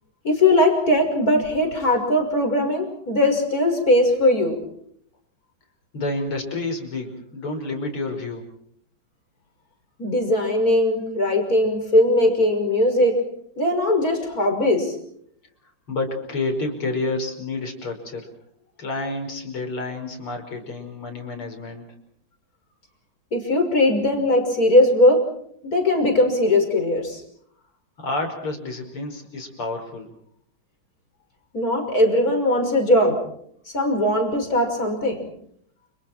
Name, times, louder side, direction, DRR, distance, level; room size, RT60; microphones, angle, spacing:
voice 1, 0.2-4.6 10.0-13.2 13.6-14.9 23.3-25.3 25.6-27.2 31.5-33.2 33.7-35.3, left 1 dB, 40° left, 4 dB, 6.6 m, -19 dB
voice 2, 5.9-8.4 15.9-18.3 18.8-21.8 28.0-30.1, left 2 dB, 85° left, 5 dB, 6.1 m, -29 dB
30.0 x 29.5 x 4.5 m, 0.66 s
omnidirectional pair, 2.3 m